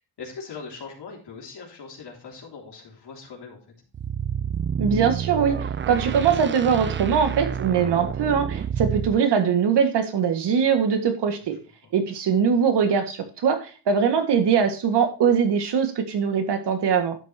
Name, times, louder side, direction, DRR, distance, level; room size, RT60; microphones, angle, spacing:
voice 1, 0.2-3.6 11.3-11.5, left 5 dB, 80° left, -1 dB, 3.4 m, -40 dB
sound 1, 3.9-9.2, right 8 dB, 30° right, 0.4 m, -29 dB
voice 2, 4.8-11.5 11.9-17.2, right 7 dB, 90° right, 6 dB, 1.8 m, -22 dB
11.5 x 7.9 x 2.8 m, 0.34 s
cardioid pair, 110°, 40 cm